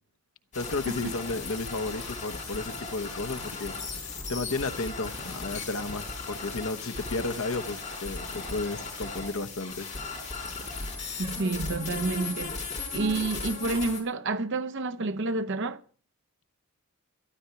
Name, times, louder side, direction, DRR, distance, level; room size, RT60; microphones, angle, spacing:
voice 1, 0.5-9.9, left 3 dB, 65° left, 1.1 m, -33 dB
sound 1, 0.5-14.0, left 3 dB, 30° left, 5.4 m, -37 dB
voice 2, 11.2-12.6 12.9-15.8, right 3 dB, 55° right, 0.8 m, -29 dB
13.0 x 12.0 x 5.8 m
head